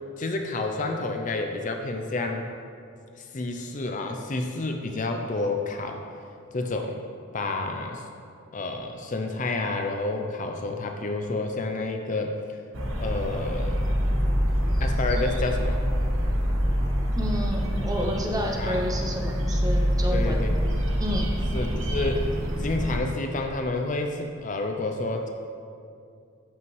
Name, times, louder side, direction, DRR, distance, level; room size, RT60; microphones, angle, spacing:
voice 1, 0.2-2.4 3.3-6.0 6.5-7.0 7.3-8.0 8.5-12.4 13.0-13.8 14.8-15.8 18.6-18.8 20.1-20.5 21.5-22.3 22.6-25.3, left 2 dB, 35° left, 4 dB, 0.5 m, -29 dB
sound 1, 12.7-23.0, equal, 60° right, 1.1 m, -26 dB
voice 2, 17.1-20.5 21.0-21.3, equal, 15° right, 1 dB, 0.7 m, -30 dB
12.5 x 5.5 x 3.2 m, 2.4 s
head